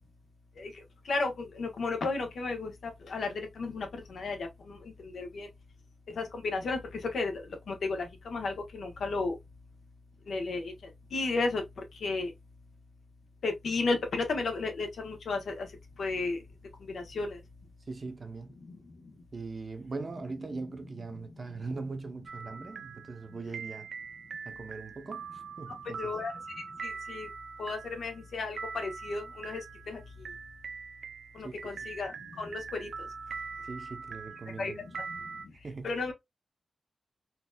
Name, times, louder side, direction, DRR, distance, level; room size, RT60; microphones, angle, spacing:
voice 1, 1.1-3.3 3.6-4.8 5.0-5.5 6.2-6.8 7.1-7.4 7.7-9.3 10.3-10.7 11.1-11.6 12.0-12.3 13.4-15.7 16.0-16.4 16.9-17.4 26.0-26.3 26.8-27.3 27.6-29.6 29.9-30.0 31.4-32.9 34.6-34.7 35.8-36.1, left 3 dB, 80° left, 1.0 m, -33 dB
voice 2, 17.9-18.5 19.3-23.9 24.5-25.2 25.6-26.1 31.4-31.7 33.7-34.8 35.6-35.9, right 3 dB, 40° right, 0.7 m, -40 dB
sound 1, 22.3-35.5, right 5 dB, 85° right, 0.4 m, -43 dB
4.3 x 2.6 x 2.2 m
wide cardioid pair, 120°, 0 cm